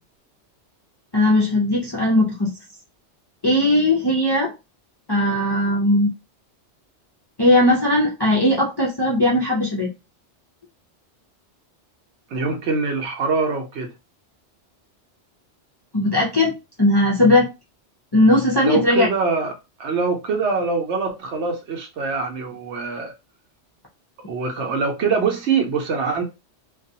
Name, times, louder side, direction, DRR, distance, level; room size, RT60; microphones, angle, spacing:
voice 1, 1.1-2.5 3.4-4.5 5.1-6.1 7.4-9.9 15.9-17.5 18.1-19.1, left 1 dB, 40° left, 0.3 m, -18 dB
voice 2, 12.3-13.9 18.6-19.5 19.8-23.1 24.2-26.2, right 4 dB, 75° right, 1.0 m, -23 dB
2.3 x 2.3 x 2.7 m
omnidirectional pair, 1.2 m